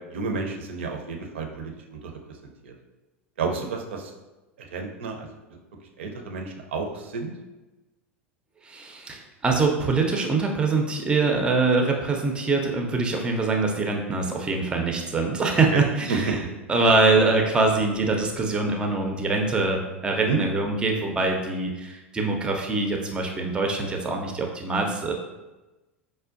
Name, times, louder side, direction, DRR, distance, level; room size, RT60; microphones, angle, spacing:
voice 1, 0.1-2.1 2.6-2.7 3.4-4.1 4.6-5.3 6.0-7.3 16.1-16.3 20.3-20.4, right 4 dB, 60° right, 2 dB, 0.5 m, -30 dB
voice 2, 8.6-25.1, right 3 dB, 15° right, 2 dB, 0.5 m, -24 dB
4.9 x 2.2 x 2.4 m, 1.1 s
figure-of-eight pair, 80°, 7 cm